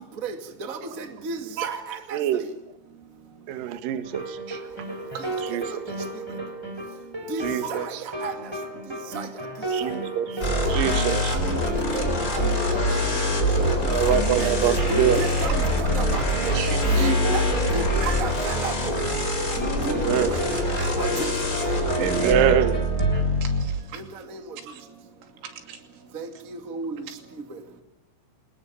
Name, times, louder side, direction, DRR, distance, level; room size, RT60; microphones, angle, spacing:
voice 1, 0.7-2.0 7.3-7.4 7.7-7.8 8.2-8.3 9.1-9.2 11.1-11.4 11.9-12.0 12.3-12.4 14.4-15.5 15.9-16.5 17.3-17.4 17.7-18.7 19.8-20.4 20.8-21.1 26.1-26.2 26.7-26.9, right 4 dB, 35° right, 6 dB, 1.4 m, -32 dB
voice 2, 3.5-4.4 4.7-4.8 5.5-5.6 7.4-7.8 9.7-10.4 10.7-11.3 13.9-15.2 17.0-17.2 19.9-20.3 22.1-22.7, right 9 dB, 60° right, 9 dB, 2.7 m, -24 dB
sound 1, 4.0-23.2, equal, 5° right, 3.9 m, -33 dB
voice 3, 5.2-5.5 7.6-7.8 16.6-17.1 18.1-18.2 22.0-22.7 23.4-24.2 24.7-24.8 25.4-25.8, right 8 dB, 90° right, 6 dB, 5.1 m, -32 dB
sound 2, 10.4-23.6, equal, 20° left, 4.1 m, -24 dB
26.0 x 20.0 x 7.1 m, 0.93 s
omnidirectional pair, 5.4 m